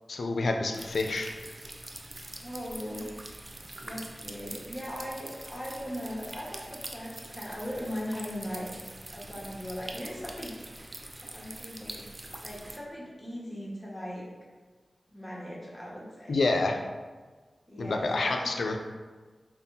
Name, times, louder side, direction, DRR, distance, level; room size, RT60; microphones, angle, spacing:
voice 1, 0.1-1.3 16.3-16.8 17.8-18.8, left 3 dB, 80° left, 4 dB, 0.4 m, -28 dB
sound 1, 0.7-12.8, right 1 dB, 35° right, 0.4 m, -44 dB
voice 2, 2.4-3.4 3.8-8.7 9.1-10.6 11.2-14.3 15.1-16.4 17.7-18.6, equal, 20° left, -5 dB, 1.3 m, -39 dB
5.2 x 2.4 x 2.7 m, 1.4 s
cardioid pair, 40°, 0 cm